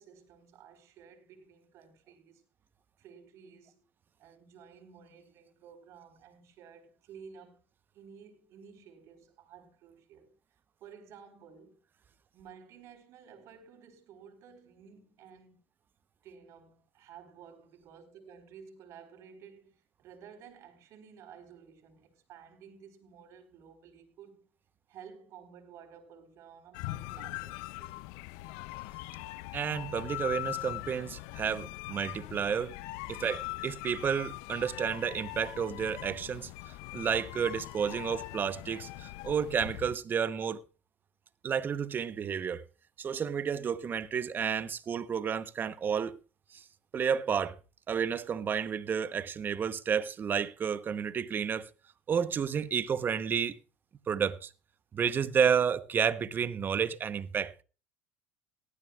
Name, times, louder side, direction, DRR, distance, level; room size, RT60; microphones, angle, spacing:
voice 1, 0.0-2.4 3.0-3.8 4.2-7.6 7.9-10.3 10.8-11.8 12.3-15.6 16.2-24.5 24.9-28.1 33.1-33.3, right 7 dB, 55° right, 4.3 m, -53 dB
sound 1, 26.7-40.0, left 19 dB, 75° left, 0.5 m, -41 dB
voice 2, 29.5-32.8 33.1-36.5 36.9-40.6 41.4-42.6 43.0-46.2 46.5-46.6 46.9-47.6 47.9-51.7 52.1-53.6 54.1-54.5 54.9-57.5, right 7 dB, 35° right, 1.0 m, -31 dB
18.5 x 13.5 x 2.4 m
supercardioid pair, 95°, 6 cm